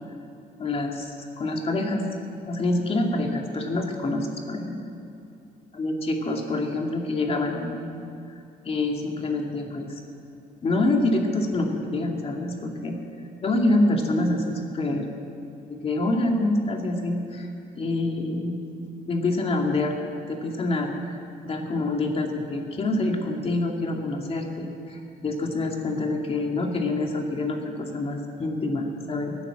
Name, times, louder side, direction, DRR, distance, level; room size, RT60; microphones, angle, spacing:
voice 1, 0.6-2.1 2.4-4.9 5.7-8.0 8.6-10.0 10.6-15.1 15.7-20.0 20.3-29.4, left 2 dB, 35° left, 2 dB, 2.3 m, -26 dB
18.0 x 9.8 x 7.9 m, 2.6 s
cardioid pair, 110°, 17 cm